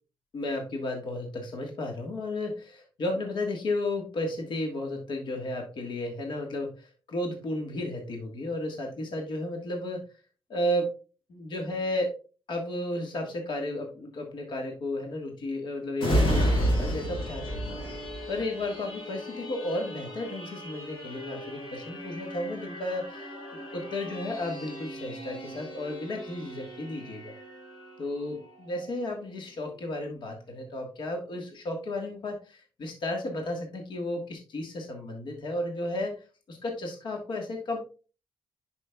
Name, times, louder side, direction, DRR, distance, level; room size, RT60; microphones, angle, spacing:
voice 1, 0.3-10.1 10.5-10.9 11.3-12.1 12.5-17.7 18.3-23.3 23.7-27.3 28.0-36.1 36.5-37.8, left 1 dB, 60° left, 2 dB, 1.5 m, -33 dB
sound 1, 16.0-29.3 29.7-29.9, equal, 80° left, 3.7 m, -33 dB
11.0 x 5.2 x 2.3 m, 0.35 s
wide cardioid pair, 140°, 9 cm